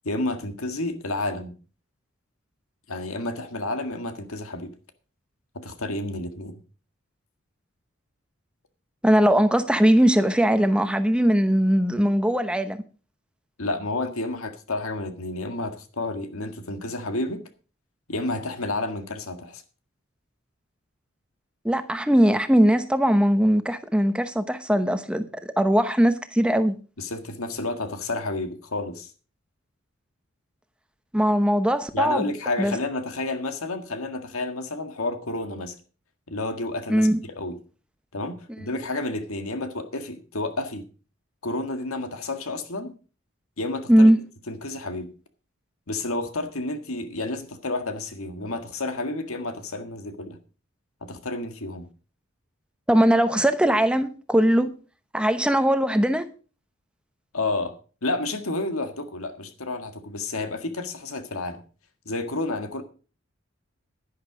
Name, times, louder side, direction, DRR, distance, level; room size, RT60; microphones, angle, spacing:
voice 1, 0.0-1.5 2.9-4.7 5.5-6.6 13.6-17.4 18.1-19.6 27.0-29.1 31.9-35.7 36.3-37.6 38.1-40.9 41.4-42.9 43.6-44.1 44.5-45.1 45.9-50.4 51.0-51.9 57.3-61.6 62.1-62.8, left 2 dB, 85° left, 1.8 m, -30 dB
voice 2, 9.0-12.8 21.6-26.8 31.1-32.3 32.6-32.8 36.9-37.2 43.9-44.2 52.9-54.7 55.1-56.2, equal, 5° right, 0.9 m, -20 dB
11.0 x 10.5 x 5.0 m
head